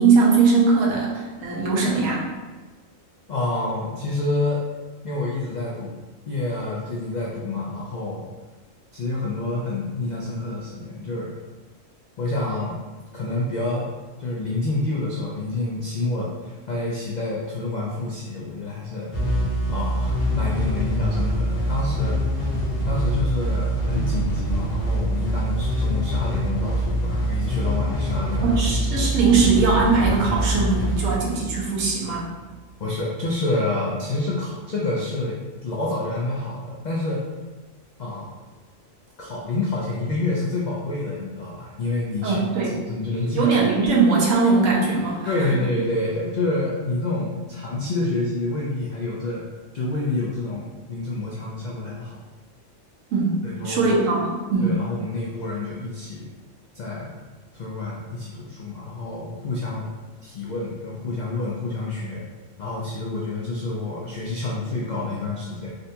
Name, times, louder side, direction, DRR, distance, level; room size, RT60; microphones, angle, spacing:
voice 1, 0.0-2.2 28.4-32.3 42.2-42.8 43.1-45.3 53.1-53.4 53.6-54.7, right 4 dB, 90° right, -3 dB, 1.1 m, -20 dB
voice 2, 3.3-4.6 5.0-6.0 6.3-8.3 8.9-11.3 12.2-12.8 13.1-13.9 14.2-19.1 19.7-22.2 22.8-28.6 32.8-37.2 38.0-38.3 39.2-43.6 45.3-49.5 49.7-52.2 53.4-53.9 54.6-56.3 56.7-57.1 57.5-59.9 60.2-62.2 62.6-65.7, left 2 dB, 80° left, -5 dB, 0.4 m, -28 dB
sound 1, 19.1-32.4, right 1 dB, 50° left, 1.0 m, -24 dB
3.7 x 2.2 x 2.7 m, 1.3 s
omnidirectional pair, 1.3 m